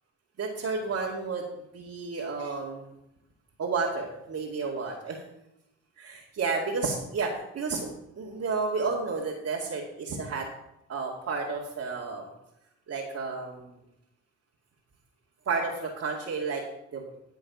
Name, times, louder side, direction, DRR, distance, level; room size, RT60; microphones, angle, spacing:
voice 1, 0.4-1.5 1.7-2.9 3.6-5.2 6.0-7.9 8.2-10.5 10.9-12.3 12.9-13.7 15.5-16.6 16.9-17.0, right 4 dB, 55° right, -5 dB, 2.3 m, -31 dB
12.5 x 6.3 x 5.9 m, 0.86 s
cardioid pair, 90°, 30 cm